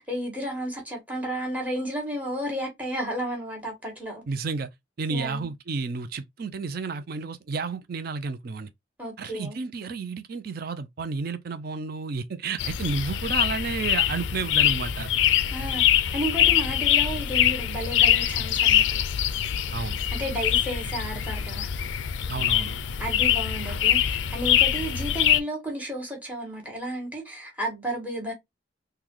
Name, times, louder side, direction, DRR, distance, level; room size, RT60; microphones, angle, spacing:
voice 1, 0.0-4.2 5.1-5.5 9.0-9.6 15.5-19.0 20.1-21.7 23.0-28.3, right 1 dB, 10° right, 1.3 m, -32 dB
voice 2, 4.3-4.7 5.0-8.7 9.2-15.1 19.7-20.0 22.3-22.8, right 4 dB, 50° right, 0.4 m, -31 dB
sound 1, 12.6-25.4, left 11 dB, 70° left, 0.3 m, -24 dB
3.7 x 2.2 x 3.0 m
head